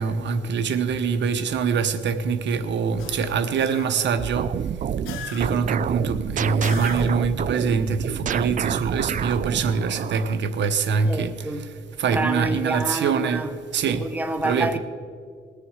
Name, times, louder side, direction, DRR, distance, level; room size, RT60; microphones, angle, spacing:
voice 1, 0.0-4.5 5.3-11.3 12.0-13.4 13.7-14.0 14.4-14.8, right 5 dB, 65° right, 0.9 m, -24 dB
sound 1, 3.0-4.2 5.0-5.8 6.6-7.4, left 5 dB, 90° left, 1.2 m, -37 dB
sound 2, 4.2-10.4, right 8 dB, 40° right, 0.4 m, -29 dB
voice 2, 11.0-11.7 12.1-13.5 13.9-14.8, right 2 dB, 10° right, 1.0 m, -28 dB
20.5 x 6.9 x 4.8 m
cardioid pair, 90°, 20 cm